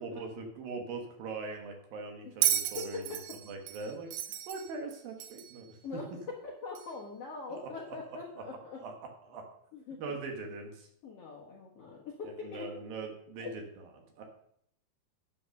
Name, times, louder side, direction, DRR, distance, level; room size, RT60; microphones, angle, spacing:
voice 1, 0.0-3.0 3.5-4.1 4.5-6.0 7.5-8.4 8.8-8.9 9.3-9.5 10.0-10.9 12.4-13.9 14.2-14.3, right 3 dB, 65° right, 3 dB, 2.9 m, -41 dB
Bell, 2.4-5.6 6.8-6.9, right 12 dB, 80° right, 2.6 m, -33 dB
voice 2, 6.4-8.8 9.7-10.2 11.0-12.6 13.4-13.5, left 4 dB, 75° left, -3 dB, 1.4 m, -43 dB
10.0 x 5.6 x 6.5 m, 0.70 s
omnidirectional pair, 5.0 m